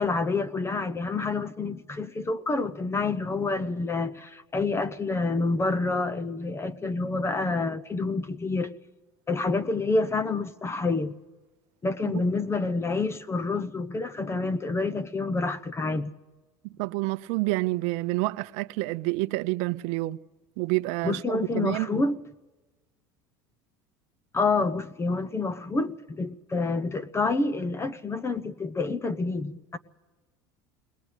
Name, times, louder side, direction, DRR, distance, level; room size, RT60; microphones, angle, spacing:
voice 1, 0.0-8.7 9.3-11.1 11.8-16.1 21.0-22.2 24.3-29.8, left 3 dB, 20° left, 0.9 m, -28 dB
voice 2, 16.8-20.2 20.6-22.0, right 21 dB, 70° right, 0.7 m, -28 dB
21.0 x 19.5 x 8.2 m
supercardioid pair, 100°, 12 cm